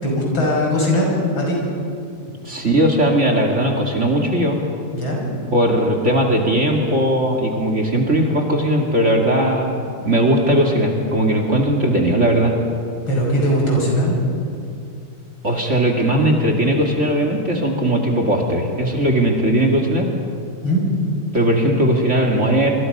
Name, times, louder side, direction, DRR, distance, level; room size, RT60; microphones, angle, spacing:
voice 1, 0.0-1.1 1.3-1.6 4.9-5.2 13.1-14.1 20.6-20.8, equal, 70° left, -2 dB, 6.8 m, -19 dB
voice 2, 2.4-4.6 5.5-12.5 15.4-20.1 21.3-22.7, right 1 dB, 35° right, 2 dB, 2.6 m, -18 dB
27.0 x 26.0 x 5.5 m, 2.4 s
omnidirectional pair, 2.3 m